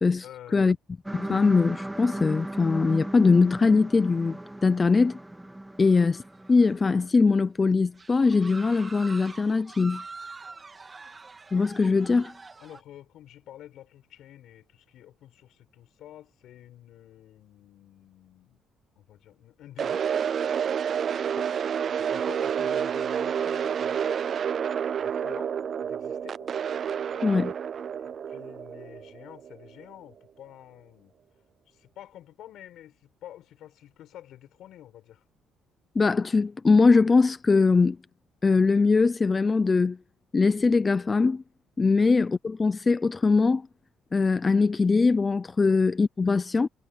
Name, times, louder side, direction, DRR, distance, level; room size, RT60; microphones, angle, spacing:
voice 1, 0.2-0.7 12.6-18.6 19.0-20.1 21.4-21.5 22.0-24.2 25.0-25.5 25.8-26.5 27.1-27.4 27.9-31.1 31.7-35.2 42.0-42.1 45.7-45.8, left 12 dB, 70° left, 5.7 m, -49 dB
voice 2, 1.1-5.2 5.8-6.2 6.5-10.0 11.5-12.3 27.2-27.5 36.0-38.0 38.4-40.0 40.3-41.4 41.8-43.7 44.1-46.7, left 4 dB, 25° left, 0.6 m, -21 dB
sound 1, 1.1-7.1, right 1 dB, 5° right, 1.2 m, -37 dB
sound 2, 6.2-7.1 7.4-7.5 7.9-12.8, right 4 dB, 25° right, 2.3 m, -45 dB
sound 3, 19.8-29.8, right 8 dB, 45° right, 0.4 m, -29 dB
cardioid pair, 130°, 0 cm